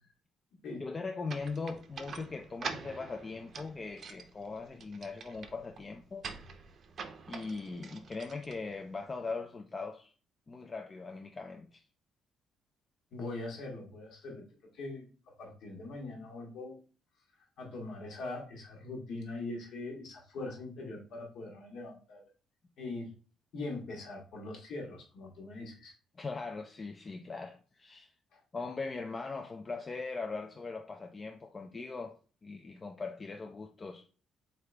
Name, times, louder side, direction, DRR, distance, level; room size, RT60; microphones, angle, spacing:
voice 1, 0.8-6.3 7.3-10.1 10.5-11.8 26.2-28.1 28.5-34.0, left 4 dB, 30° left, 0.4 m, -40 dB
sound 1, 1.3-9.1, right 5 dB, 55° right, 0.6 m, -46 dB
voice 2, 13.1-14.4 14.7-15.1 15.4-16.8 17.6-22.2 22.8-23.1 23.5-25.9 28.3-28.4, left 2 dB, 70° left, 1.3 m, -42 dB
3.8 x 3.3 x 3.3 m
cardioid pair, 85°, 0 cm